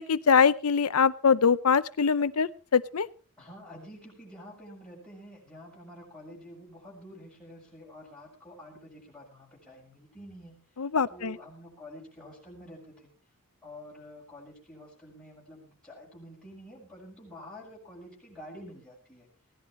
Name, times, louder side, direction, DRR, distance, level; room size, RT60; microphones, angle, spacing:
voice 1, 0.0-3.1 10.8-11.3, left 6 dB, 80° left, 14 dB, 0.7 m, -23 dB
voice 2, 3.4-10.6 11.1-13.1 13.6-19.3, equal, 5° left, -5 dB, 6.9 m, -48 dB
19.5 x 16.5 x 3.2 m, 0.36 s
head